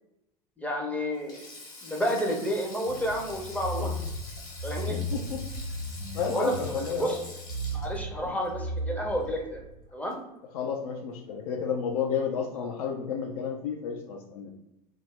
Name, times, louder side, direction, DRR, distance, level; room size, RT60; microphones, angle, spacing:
voice 1, 0.6-1.4 1.8-3.9 4.6-5.0 6.3-6.5 7.0-7.2 7.7-9.6 9.9-10.2, equal, 5° left, 0 dB, 0.5 m, -30 dB
Sink (filling or washing), 1.1-9.6 9.9-10.1 11.3-11.5, left 2 dB, 40° left, 1.1 m, -46 dB
sound 1, 2.9-9.8, equal, 85° right, 0.6 m, -36 dB
voice 2, 4.9-5.5 6.1-7.2 8.2-8.4 10.5-14.5, left 6 dB, 60° left, 2 dB, 0.4 m, -31 dB
2.3 x 2.0 x 3.3 m, 0.87 s
figure-of-eight pair, 80°, 21 cm